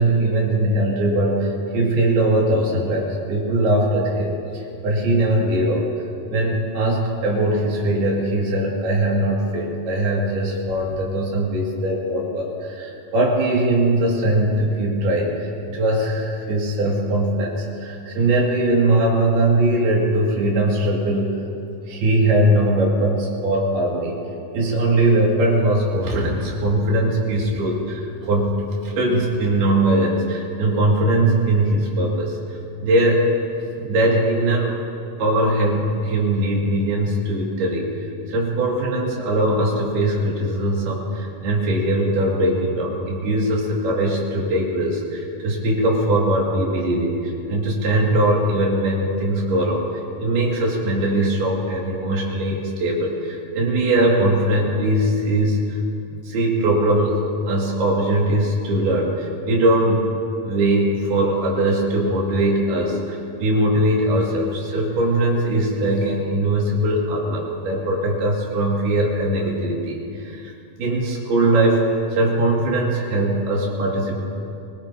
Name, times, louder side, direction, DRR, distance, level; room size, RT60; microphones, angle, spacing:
voice 1, 0.0-5.9 6.3-21.4 21.9-24.2 24.5-28.6 28.8-32.4 32.8-33.3 33.8-34.7 35.2-49.8 50.2-55.8 56.1-60.1 60.4-70.5 70.8-74.2, right 1 dB, 90° right, -3 dB, 4.6 m, -21 dB
23.5 x 20.0 x 3.0 m, 2.7 s
omnidirectional pair, 4.3 m